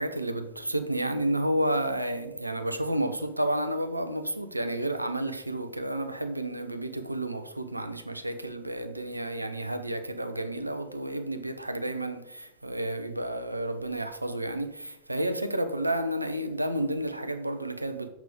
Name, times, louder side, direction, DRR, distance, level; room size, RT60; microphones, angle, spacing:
voice 1, 0.0-18.1, right 1 dB, 85° right, 0.7 m, -31 dB
7.2 x 5.9 x 5.0 m
figure-of-eight pair, 90°, 0 cm